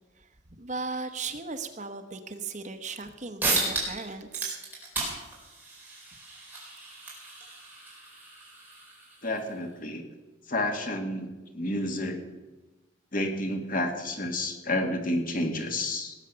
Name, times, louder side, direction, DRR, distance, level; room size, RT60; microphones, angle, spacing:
voice 1, 0.6-4.6, right 4 dB, 35° right, 8 dB, 1.0 m, -37 dB
sound 1, 3.0-3.1 3.4-4.0 4.3-9.5, right 3 dB, 10° right, 4.3 m, -34 dB
voice 2, 9.2-10.0 10.5-11.3 11.5-12.2 13.1-16.2, left 1 dB, 45° left, 4 dB, 1.9 m, -30 dB
18.5 x 8.0 x 6.8 m, 1.1 s
head